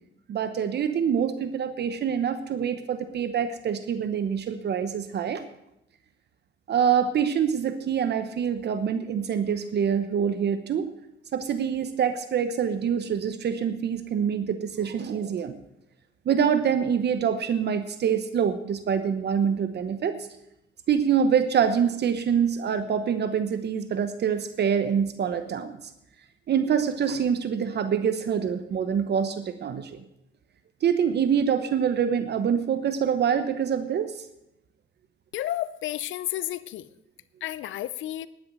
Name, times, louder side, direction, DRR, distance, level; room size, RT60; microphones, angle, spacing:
voice 1, 0.3-5.4 6.7-10.9 11.3-15.6 16.3-20.2 20.9-25.8 26.5-30.0 30.8-34.2, right 7 dB, 55° right, 10 dB, 0.9 m, -25 dB
voice 2, 35.3-36.9 37.4-38.3, left 13 dB, 80° left, 16 dB, 0.6 m, -31 dB
10.5 x 9.4 x 7.8 m, 0.82 s
cardioid pair, 90°, 20 cm